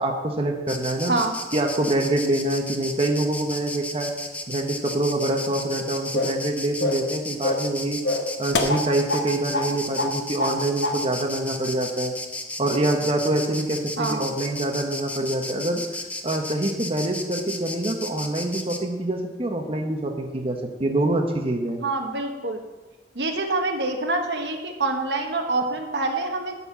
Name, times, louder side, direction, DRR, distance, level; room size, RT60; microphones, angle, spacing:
voice 1, 0.0-1.1 1.5-4.1 4.5-8.0 8.4-12.1 12.6-15.8 16.2-21.8, right 1 dB, 35° right, 2 dB, 0.8 m, -25 dB
Insect, 0.7-18.8, left 2 dB, 10° left, 0.7 m, -34 dB
voice 2, 1.1-1.4 14.0-14.3 21.8-22.6 23.1-26.6, right 2 dB, 75° right, 4 dB, 1.2 m, -26 dB
sound 1, 6.1-6.4 6.8-7.1 7.4-7.7 8.0-9.3 9.5-9.7 10.0-10.6 10.8-11.0, left 2 dB, 85° left, 0.9 m, -25 dB
11.0 x 4.3 x 7.2 m, 1.2 s
head